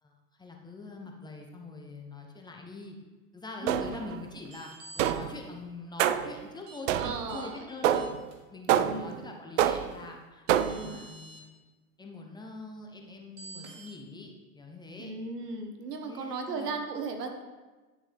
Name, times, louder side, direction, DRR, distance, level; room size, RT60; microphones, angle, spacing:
voice 1, 0.0-3.0 3.3-8.1 8.5-10.5 10.7-11.5 12.0-15.1 16.0-16.8, left 3 dB, 10° left, 1 dB, 0.9 m, -44 dB
voice 2, 3.6-3.9 7.0-7.9 8.7-9.3 10.5-11.0 15.0-17.3, right 3 dB, 80° right, 5 dB, 1.5 m, -37 dB
sound 1, 3.7-4.2 5.0-5.4 6.0-6.4 6.9-7.3 7.8-8.3 8.7-9.2 9.6-10.0 10.5-10.9, right 10 dB, 55° right, 0.6 m, -27 dB
sound 2, 4.4-5.0 6.7-6.8 7.3-7.4 7.9-8.3 10.0-10.1 10.5-11.4 13.4-13.9, right 2 dB, 35° right, 1.9 m, -48 dB
11.0 x 7.1 x 3.5 m, 1.3 s
hypercardioid pair, 115°, 47 cm